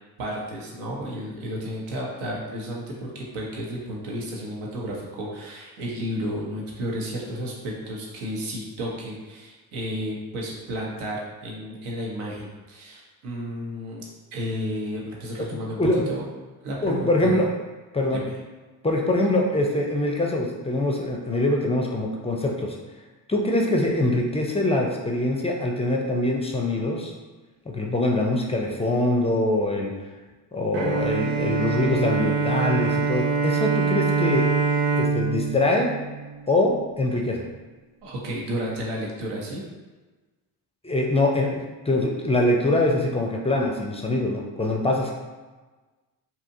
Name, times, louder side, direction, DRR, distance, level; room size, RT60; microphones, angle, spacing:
voice 1, 0.2-16.2 16.6-17.4 18.1-18.3 38.0-39.6, equal, 75° right, -3 dB, 0.8 m, -32 dB
voice 2, 15.8-16.1 16.8-17.5 17.9-18.2 18.8-22.7 23.3-27.1 27.7-29.9 30.5-34.5 34.9-35.9 36.5-37.4 40.8-45.1, left 1 dB, 15° left, 0 dB, 0.4 m, -23 dB
Bowed string instrument, 30.7-36.9, right 5 dB, 45° right, 0.5 m, -25 dB
2.8 x 2.4 x 2.6 m, 1.3 s
hypercardioid pair, 55°, 49 cm